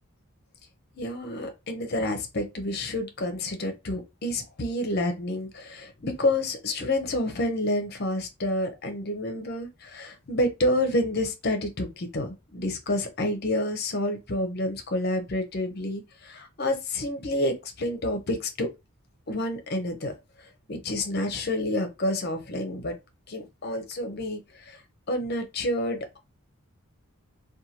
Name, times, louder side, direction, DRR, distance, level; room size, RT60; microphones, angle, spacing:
voice 1, 1.0-18.7 19.3-20.1 20.7-23.0 23.3-24.8 25.1-26.2, left 1 dB, 45° left, 0.6 m, -29 dB
2.7 x 2.2 x 2.8 m
head